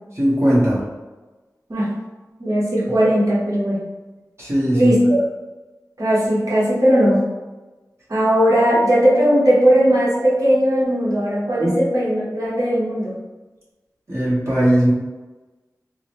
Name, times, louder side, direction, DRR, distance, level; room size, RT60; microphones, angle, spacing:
voice 1, 0.1-0.8 4.4-4.9 11.6-11.7 14.1-14.9, right 1 dB, 45° right, -8 dB, 1.3 m, -18 dB
voice 2, 2.4-3.8 4.7-5.2 6.0-7.2 8.1-13.1, equal, 60° right, -7 dB, 1.1 m, -17 dB
3.7 x 2.0 x 3.1 m, 1.2 s
cardioid pair, 40°, 7 cm